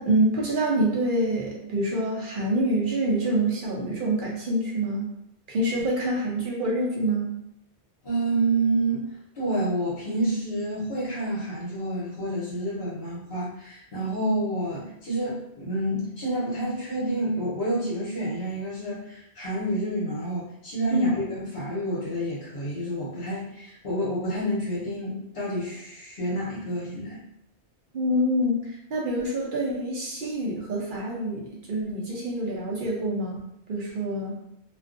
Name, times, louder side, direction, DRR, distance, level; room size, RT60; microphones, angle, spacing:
voice 1, 0.0-5.1 5.5-7.3 20.9-21.2 27.9-33.4 33.7-34.4, right 1 dB, 55° right, -2 dB, 0.7 m, -26 dB
voice 2, 8.0-9.1 9.3-27.2, right 1 dB, 60° left, -8 dB, 1.0 m, -28 dB
2.4 x 2.3 x 2.5 m, 0.79 s
omnidirectional pair, 1.1 m